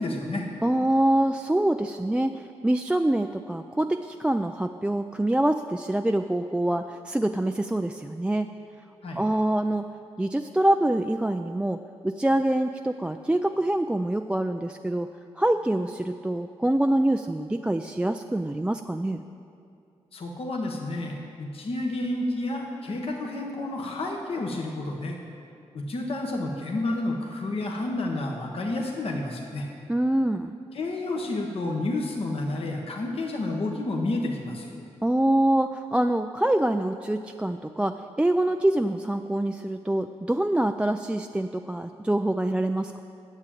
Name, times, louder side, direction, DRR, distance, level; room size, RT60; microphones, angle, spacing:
voice 1, 0.0-0.5 9.0-9.2 20.1-25.2 25.7-29.7 30.7-34.7, left 2 dB, 55° left, 0 dB, 1.3 m, -30 dB
voice 2, 0.6-8.5 9.2-9.8 10.2-11.8 12.0-15.1 15.4-19.2 29.9-30.5 35.0-43.0, right 1 dB, 10° right, 5 dB, 0.4 m, -25 dB
9.7 x 7.4 x 8.6 m, 2.5 s
cardioid pair, 70°, 12 cm